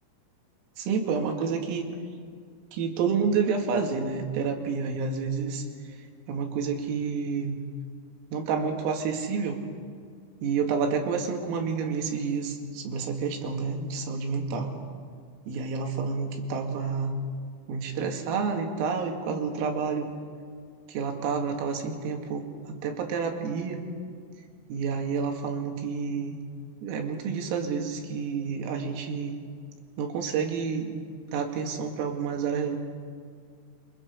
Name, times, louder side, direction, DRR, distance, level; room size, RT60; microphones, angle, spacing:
voice 1, 0.8-1.9 2.7-5.6 6.3-7.6 8.3-9.6 10.4-14.7 15.5-17.2 17.7-20.1 20.9-23.8 24.7-26.4 26.8-29.4 30.0-30.9 31.3-32.8, right 5 dB, 85° right, 3 dB, 4.9 m, -29 dB
29.0 x 25.5 x 5.5 m, 2.1 s
omnidirectional pair, 5.9 m